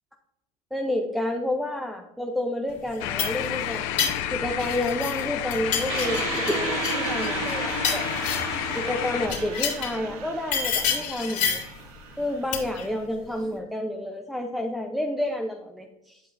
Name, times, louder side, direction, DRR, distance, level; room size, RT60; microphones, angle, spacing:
voice 1, 0.7-3.9 4.3-8.0 8.7-11.6 12.2-16.2, left 1 dB, ahead, 3 dB, 0.7 m, -30 dB
sound 1, 2.9-5.2 5.5-8.6 9.2-10.0 10.5-11.8 12.5-12.9, left 7 dB, 40° left, 2.5 m, -29 dB
sound 2, 3.0-9.3, left 11 dB, 65° left, 0.9 m, -30 dB
sound 3, 5.9-13.0, right 6 dB, 70° right, 1.2 m, -34 dB
10.0 x 5.3 x 2.6 m, 0.89 s
hypercardioid pair, 95°, 19 cm